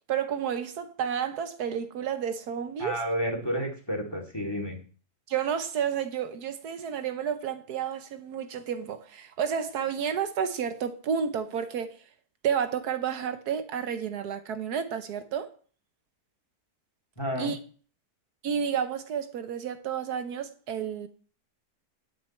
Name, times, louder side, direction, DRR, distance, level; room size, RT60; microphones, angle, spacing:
voice 1, 0.1-3.0 5.3-11.9 12.4-15.5 17.4-17.6 18.4-21.1, right 8 dB, 75° right, 1.3 m, -31 dB
voice 2, 2.8-4.8 17.2-17.5, equal, 15° left, 2.3 m, -31 dB
9.2 x 9.0 x 4.3 m
omnidirectional pair, 1.7 m